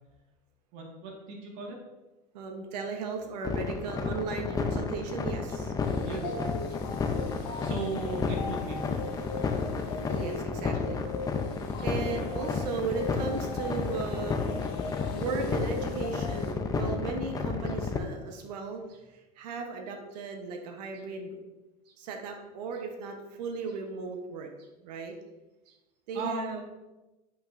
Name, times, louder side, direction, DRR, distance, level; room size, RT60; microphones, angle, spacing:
voice 1, 0.7-1.8 6.0-6.3 7.6-9.0 17.3-17.6 26.1-26.6, right 3 dB, 60° right, 0 dB, 1.9 m, -37 dB
voice 2, 2.3-5.7 6.1-6.4 10.1-21.4 22.0-24.5 24.8-25.2 25.7-25.8 26.1-26.6, right 4 dB, 85° right, 4 dB, 1.0 m, -36 dB
sound 1, 3.4-18.0, left 5 dB, 20° left, 0.6 m, -31 dB
sound 2, 5.8-16.5, left 4 dB, 70° left, 1.0 m, -39 dB
8.0 x 5.6 x 2.6 m, 1.1 s
supercardioid pair, 125°, 20 cm